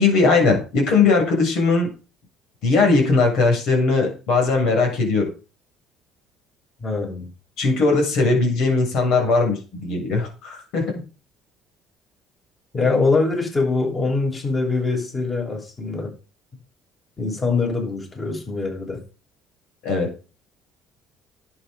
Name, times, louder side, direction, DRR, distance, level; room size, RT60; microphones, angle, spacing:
voice 1, 0.0-1.9 2.6-5.3 7.6-10.9 19.8-20.1, left 3 dB, 70° left, 7.2 m, -19 dB
voice 2, 6.8-7.3 12.7-16.1 17.2-19.0, left 3 dB, 30° left, 7.5 m, -23 dB
11.5 x 9.0 x 5.3 m
supercardioid pair, 75°, 0 cm